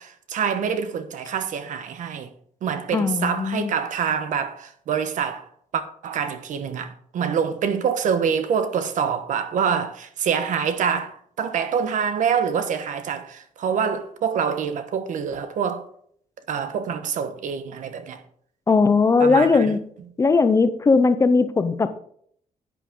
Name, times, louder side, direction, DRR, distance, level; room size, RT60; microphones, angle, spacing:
voice 1, 0.0-2.3 2.6-15.8 16.5-18.2 19.2-19.7, right 7 dB, 70° right, 1.2 m, -26 dB
voice 2, 2.9-3.7 18.7-19.8 20.2-21.9, left 4 dB, 20° left, 0.6 m, -18 dB
11.0 x 9.0 x 3.8 m
wide cardioid pair, 180°, 13 cm